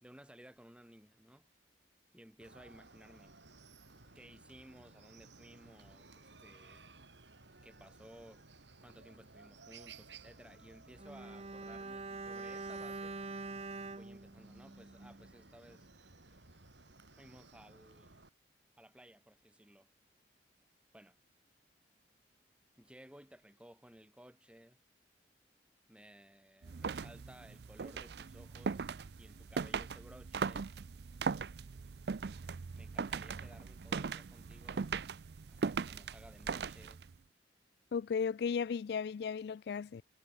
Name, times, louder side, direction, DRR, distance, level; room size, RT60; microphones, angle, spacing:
voice 1, 0.0-1.5 2.1-3.3 4.1-7.0 7.6-8.5 8.8-13.2 13.9-15.9 17.2-18.2 18.8-19.9 20.9-21.2 22.8-24.8 25.9-28.9 29.2-30.7 32.7-34.9 35.5-37.0, equal, 5° right, 2.0 m, -58 dB
Chicken rooster, 2.4-18.3, right 3 dB, 85° right, 3.1 m, -58 dB
Bowed string instrument, 11.0-15.4 15.7-15.8, right 3 dB, 35° right, 0.9 m, -45 dB
sound 1, 26.6-37.2, right 5 dB, 65° right, 0.5 m, -39 dB
voice 2, 37.9-40.0, left 6 dB, 60° left, 0.3 m, -35 dB
head